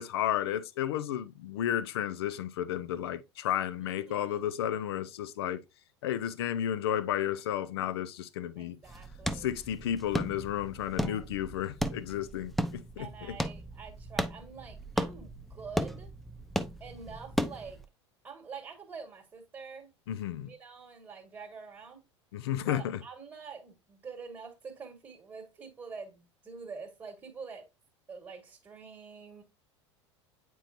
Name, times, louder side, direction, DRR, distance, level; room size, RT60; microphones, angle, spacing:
voice 1, 0.0-5.6 6.0-8.8 9.3-13.4 20.1-20.5 22.3-23.0, left 11 dB, 60° left, 0.6 m, -32 dB
voice 2, 3.8-4.4 8.6-9.5 11.0-11.2 13.0-16.1 16.8-17.8 18.2-19.9 20.5-22.0 22.6-27.7 28.1-29.4, right 5 dB, 15° right, 1.5 m, -46 dB
sound 1, 8.8-17.8, equal, ahead, 0.5 m, -36 dB
8.9 x 4.6 x 2.6 m
figure-of-eight pair, 75°, 15 cm